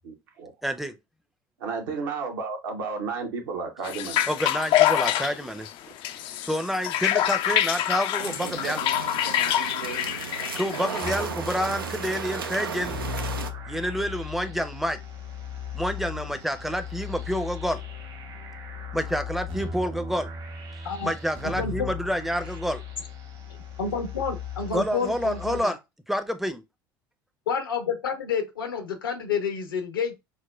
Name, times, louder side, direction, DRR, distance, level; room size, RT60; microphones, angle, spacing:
voice 1, 0.0-0.5 1.6-4.2, right 4 dB, 70° right, 1.0 m, -32 dB
voice 2, 0.6-0.9 4.3-5.7 6.4-8.8 10.4-13.0 13.7-15.0 15.7-17.8 18.9-20.3 21.0-22.8 24.7-25.8 26.1-26.6, equal, ahead, 0.6 m, -28 dB
sound 1, 3.8-11.2, left 12 dB, 50° left, 0.4 m, -26 dB
sound 2, 8.2-13.5, right 5 dB, 85° right, 0.4 m, -34 dB
sound 3, 11.0-25.6, left 5 dB, 50° right, 1.1 m, -37 dB
voice 3, 21.4-21.9 23.8-25.7 27.5-30.1, left 6 dB, 80° left, 0.8 m, -29 dB
6.1 x 2.1 x 2.3 m
figure-of-eight pair, 65°, 12 cm